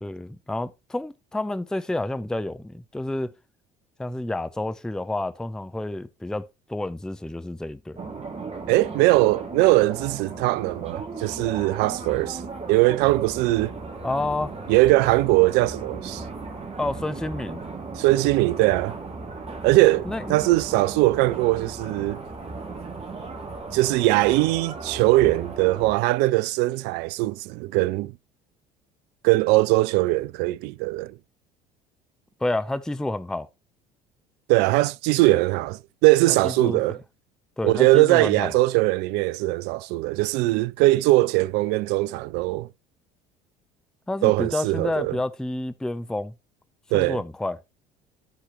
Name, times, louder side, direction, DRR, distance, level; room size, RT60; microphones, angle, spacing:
voice 1, 0.0-3.3 4.0-8.0 14.0-14.5 16.8-17.6 20.0-20.5 32.4-33.5 36.4-37.0 37.6-38.5 44.1-46.3 46.9-47.6, left 2 dB, 5° left, 0.5 m, -29 dB
sound 1, 8.0-25.9, right 3 dB, 30° right, 2.4 m, -36 dB
voice 2, 8.7-12.4 12.7-13.7 14.7-16.2 18.0-19.0 19.6-22.2 23.7-28.1 29.2-31.1 34.5-37.0 37.6-42.7 44.2-45.2 46.9-47.2, right 19 dB, 60° right, 0.4 m, -21 dB
13.5 x 4.8 x 3.0 m
hypercardioid pair, 60°, 20 cm